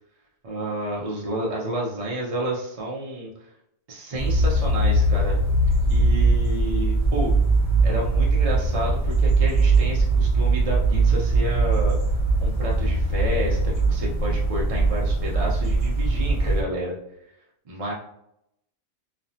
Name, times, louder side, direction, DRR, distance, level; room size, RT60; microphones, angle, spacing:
voice 1, 0.4-3.3 3.9-5.4 5.9-7.3 7.8-12.0 12.4-17.0 17.7-17.9, right 1 dB, 55° right, -4 dB, 0.4 m, -30 dB
sound 1, 4.1-16.6, right 2 dB, 35° left, 1.2 m, -21 dB
3.2 x 2.1 x 2.6 m, 0.76 s
omnidirectional pair, 1.4 m